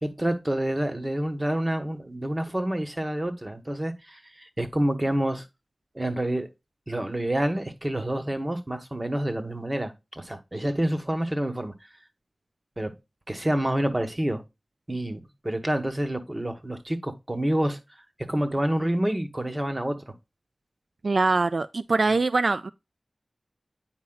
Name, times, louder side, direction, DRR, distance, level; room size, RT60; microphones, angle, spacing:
voice 1, 0.0-5.4 5.9-6.5 6.9-11.7 12.8-12.9 13.3-14.4 14.9-17.8 18.3-20.1, right 1 dB, 30° right, 1.3 m, -28 dB
voice 2, 21.0-22.7, right 3 dB, 85° right, 0.3 m, -23 dB
9.4 x 4.9 x 2.3 m
wide cardioid pair, 60°, 0 cm